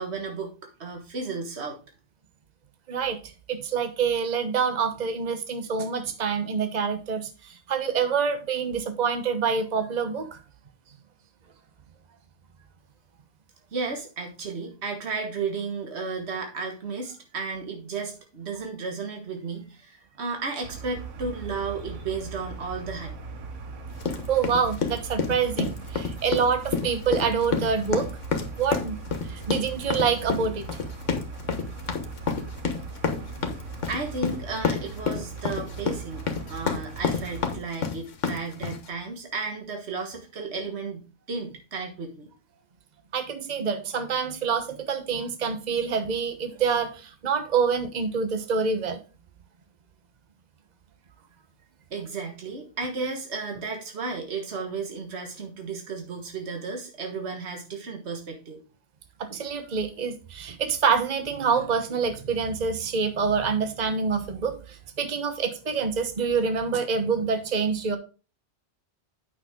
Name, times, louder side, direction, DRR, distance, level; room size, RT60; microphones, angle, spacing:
voice 1, 0.0-1.8 13.7-23.1 33.9-41.0 41.3-42.3 51.9-58.6, right 4 dB, 65° right, 2 dB, 1.8 m, -33 dB
voice 2, 3.5-10.4 24.3-28.1 28.6-29.0 29.3-30.7 43.1-49.0 59.2-68.0, right 6 dB, 40° right, 8 dB, 1.1 m, -26 dB
sound 1, 20.6-37.6, right 4 dB, 85° right, 1.3 m, -39 dB
sound 2, 24.0-38.9, left 5 dB, 85° left, 1.5 m, -29 dB
8.9 x 6.2 x 3.6 m, 0.33 s
omnidirectional pair, 1.2 m